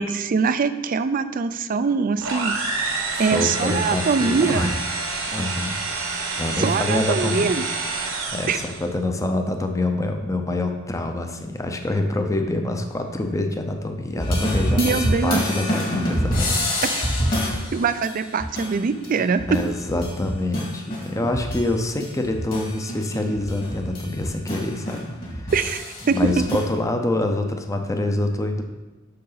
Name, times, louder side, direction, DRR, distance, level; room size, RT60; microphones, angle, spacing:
voice 1, 0.0-2.5 3.2-4.7 6.6-7.6 8.5-8.6 14.8-15.4 15.7-15.8 16.9-17.1 17.7-19.6 25.5-26.5, right 5 dB, 45° right, 12 dB, 0.4 m, -23 dB
sound 1, 2.2-8.9, right 3 dB, 70° right, 1.1 m, -28 dB
voice 2, 3.1-5.8 6.4-7.6 8.1-16.8 17.4-17.6 19.5-25.5 26.0-28.6, left 2 dB, 15° left, 5 dB, 0.6 m, -26 dB
sound 2, 14.2-21.7 22.0-26.6, equal, 45° left, 2.1 m, -27 dB
6.7 x 6.4 x 4.0 m, 1.1 s
head